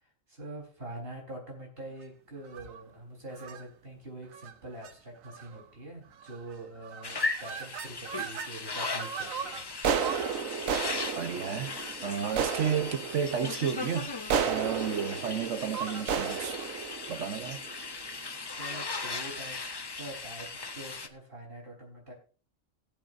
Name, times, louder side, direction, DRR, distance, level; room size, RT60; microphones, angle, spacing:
voice 1, 0.0-9.6 18.6-19.6 19.9-22.1, right 1 dB, 45° right, 4.4 m, -44 dB
sound 1, 2.4-2.8 3.4-3.6 4.3-4.5 4.8-4.9 5.3-5.6 6.2-6.5 6.8-8.5 8.9-18.1, right 7 dB, 85° right, 1.2 m, -34 dB
sound 2, 7.0-21.1, left 3 dB, 30° left, 0.5 m, -38 dB
voice 2, 11.1-11.8 12.0-16.6 17.1-17.6, right 7 dB, 65° right, 1.3 m, -32 dB
18.5 x 8.2 x 2.6 m
omnidirectional pair, 1.3 m